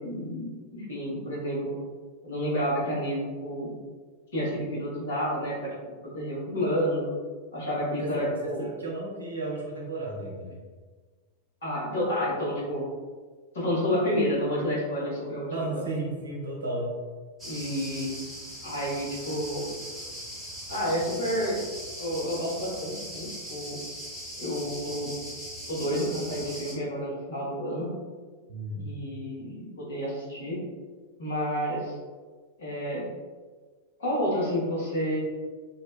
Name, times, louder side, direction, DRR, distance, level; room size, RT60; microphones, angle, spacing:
voice 1, 0.0-1.8 2.2-3.7 4.3-5.7 6.1-7.0 7.5-8.7 11.6-12.8 13.5-15.8 17.4-18.2 18.6-19.7 20.7-21.6 22.0-23.8 24.4-25.1 25.7-27.9 28.8-30.6 31.2-31.9 32.6-33.1 34.0-35.2, equal, 65° left, -7 dB, 1.2 m, -30 dB
voice 2, 8.0-10.6 15.5-16.9 28.5-28.9, right 2 dB, 75° right, -3 dB, 0.6 m, -34 dB
sound 1, 17.4-26.7, equal, 5° right, 1.0 m, -40 dB
2.7 x 2.2 x 2.3 m, 1.4 s
figure-of-eight pair, 90°, 0 cm